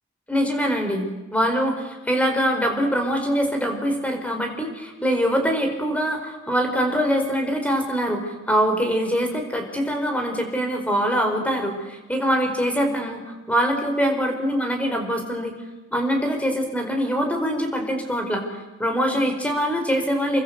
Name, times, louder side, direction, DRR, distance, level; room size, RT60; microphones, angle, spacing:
voice 1, 0.3-15.5 15.9-20.4, equal, 5° left, 4 dB, 4.7 m, -23 dB
28.5 x 24.0 x 8.1 m, 1.1 s
head